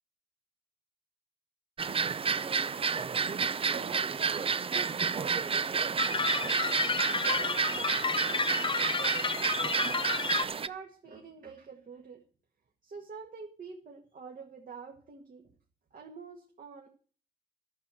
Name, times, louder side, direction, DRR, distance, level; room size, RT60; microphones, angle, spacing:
sound 1, 1.8-10.7, right 6 dB, 30° right, 0.5 m, -31 dB
voice 1, 3.7-10.1 10.6-12.2 12.8-15.5 15.9-16.9, right 5 dB, 45° right, 2 dB, 1.9 m, -47 dB
sound 2, 6.0-10.4, left 4 dB, 25° left, 0.9 m, -31 dB
11.5 x 6.3 x 8.8 m, 0.42 s
cardioid pair, 90°, 20 cm